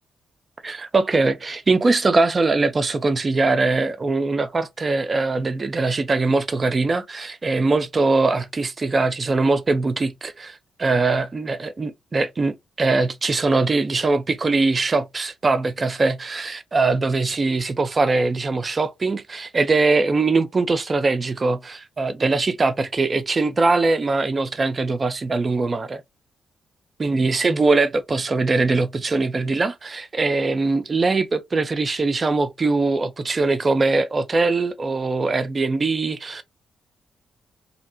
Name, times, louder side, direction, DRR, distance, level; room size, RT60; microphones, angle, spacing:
voice 1, 0.6-26.0 27.0-36.4, right 3 dB, 40° right, 0.6 m, -21 dB
2.8 x 2.1 x 2.6 m
hypercardioid pair, 45°, 0 cm